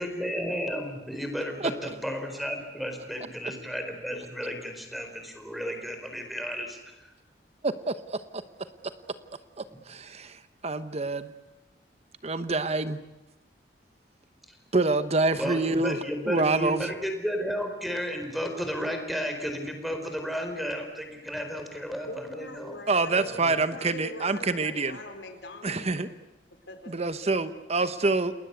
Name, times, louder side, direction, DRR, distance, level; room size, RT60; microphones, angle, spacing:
voice 1, 0.0-6.9 14.5-14.6 15.4-22.8 23.4-23.6, equal, ahead, 5 dB, 4.4 m, -33 dB
voice 2, 7.6-8.4 9.6-11.3 12.2-13.0 14.7-16.0 16.2-16.9 22.9-25.0 25.6-26.1 26.9-28.3, right 3 dB, 40° right, 11 dB, 1.0 m, -27 dB
voice 3, 22.1-26.0 26.5-27.4, left 2 dB, 80° left, 6 dB, 4.6 m, -43 dB
29.5 x 20.5 x 8.3 m, 0.99 s
head